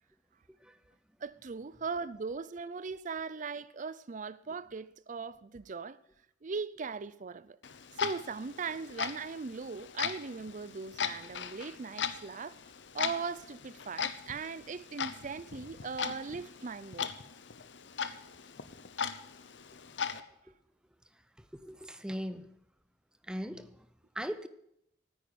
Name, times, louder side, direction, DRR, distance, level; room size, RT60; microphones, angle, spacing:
voice 1, 1.2-6.0 6.4-7.6 8.0-12.6 12.9-17.1, right 5 dB, 45° right, 0.5 m, -39 dB
Clock, 7.6-20.2, left 7 dB, 85° left, 0.8 m, -39 dB
voice 2, 21.5-22.5 23.3-23.7 24.2-24.5, equal, 5° right, 0.7 m, -38 dB
9.9 x 9.0 x 9.3 m
head